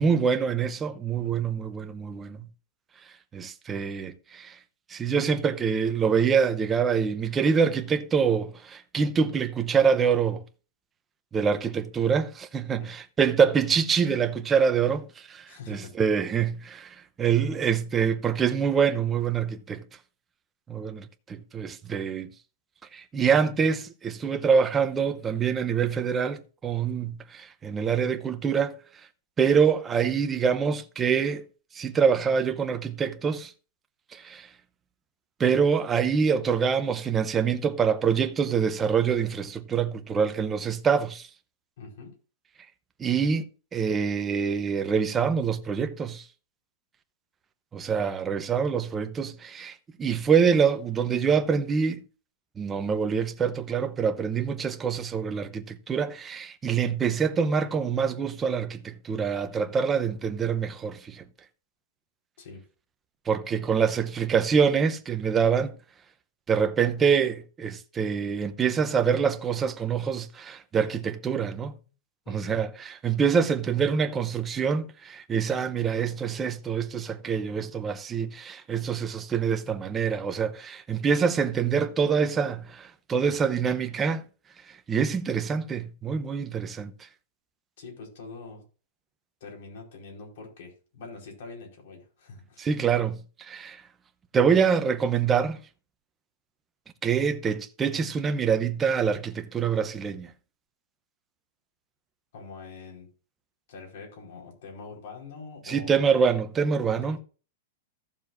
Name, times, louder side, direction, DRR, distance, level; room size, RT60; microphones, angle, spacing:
voice 1, 0.0-2.5 3.3-4.6 4.9-10.4 11.3-19.8 20.7-22.3 22.9-28.7 29.4-31.4 31.7-33.5 34.1-34.5 35.4-41.3 43.0-46.3 47.7-52.0 52.6-61.2 63.3-65.7 66.5-71.7 72.3-84.2 84.7-86.9 92.6-93.8 94.3-95.6 97.0-100.3 105.7-107.2, right 6 dB, 10° right, 0.7 m, -25 dB
voice 2, 15.5-15.9 41.8-42.1 62.4-62.6 72.2-72.6 87.8-88.6 89.4-92.7 102.3-103.1 103.7-106.2 106.8-107.2, left 4 dB, 55° left, 4.6 m, -44 dB
15.0 x 7.1 x 2.6 m
supercardioid pair, 175°, 0 cm